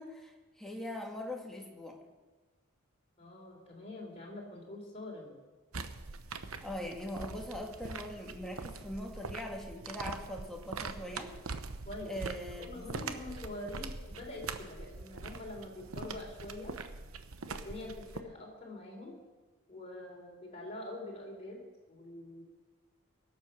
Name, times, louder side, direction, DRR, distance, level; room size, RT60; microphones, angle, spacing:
voice 1, 0.0-2.0 6.6-11.4 12.1-12.8, left 1 dB, ahead, 0 dB, 1.9 m, -41 dB
voice 2, 3.2-5.3 11.9-12.1 12.6-16.7 17.5-19.2 19.7-21.6 21.9-22.4, left 2 dB, 30° left, -1 dB, 3.8 m, -45 dB
sound 1, 5.7-18.2, right 4 dB, 75° right, 0.9 m, -43 dB
22.5 x 7.9 x 6.3 m, 1.3 s
head